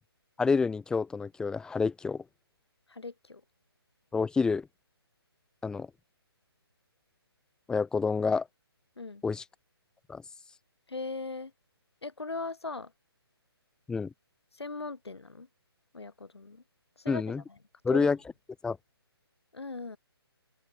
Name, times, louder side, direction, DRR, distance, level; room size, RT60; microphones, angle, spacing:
voice 1, 0.4-2.2 4.1-4.7 5.6-5.9 7.7-8.5 9.2-9.4 10.1-10.2 13.9-14.1 17.1-17.4 17.8-18.2 18.6-18.8, left 4 dB, 5° left, 1.6 m, -28 dB
voice 2, 2.9-3.4 9.0-9.2 10.9-11.5 12.0-12.9 14.5-15.5 15.9-16.6 17.0-17.6 17.9-18.1 19.5-20.0, left 3 dB, 80° left, 7.7 m, -39 dB
figure-of-eight pair, 145°, 14 cm